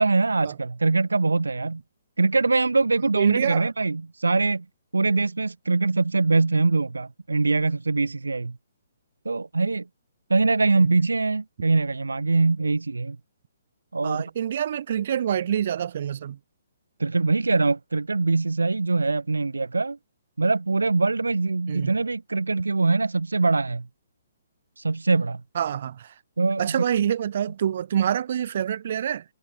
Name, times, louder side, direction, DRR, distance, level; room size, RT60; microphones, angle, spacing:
voice 1, 0.0-1.8 2.2-4.7 4.9-8.6 9.2-9.9 10.3-13.2 13.9-14.2 17.0-20.0 20.4-23.9 24.8-25.4 26.4-26.8, right 3 dB, 90° right, 0.7 m, -23 dB
voice 2, 3.1-3.7 10.7-10.9 14.0-16.4 21.7-21.9 25.5-26.1 26.6-29.2, right 9 dB, 55° right, 1.2 m, -26 dB
hypercardioid pair, 140°, 0 cm